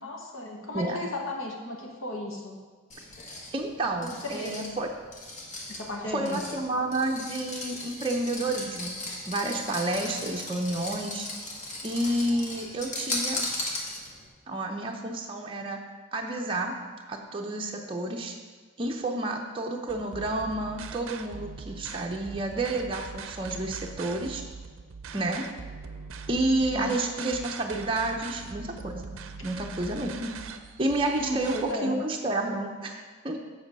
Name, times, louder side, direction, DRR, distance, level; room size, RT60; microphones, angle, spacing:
voice 1, 0.0-2.6 4.0-4.5 5.7-6.4 26.7-26.9 31.2-31.9, left 1 dB, 65° left, 0 dB, 1.3 m, -35 dB
sound 1, 2.9-14.3, left 2 dB, 35° left, 1.2 m, -37 dB
voice 2, 3.5-4.9 6.1-8.9 9.3-11.3 11.8-13.4 14.5-15.8 16.1-16.7 17.1-18.3 18.8-24.4 25.1-25.5 26.3-29.1 29.4-30.4 30.8-31.6 31.8-33.4, right 2 dB, 25° right, 0 dB, 0.6 m, -30 dB
sound 2, 19.9-31.7, right 5 dB, 65° right, 0.5 m, -42 dB
7.6 x 6.3 x 5.3 m, 1.5 s
head